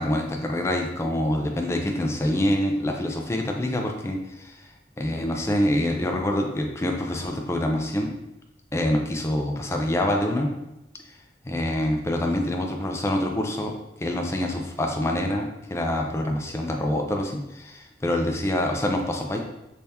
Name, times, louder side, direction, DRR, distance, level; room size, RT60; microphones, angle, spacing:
voice 1, 0.0-4.6 5.0-8.1 8.7-10.5 11.4-13.7 14.0-19.4, left 1 dB, 15° left, 2 dB, 0.3 m, -26 dB
3.5 x 3.3 x 2.7 m, 0.92 s
head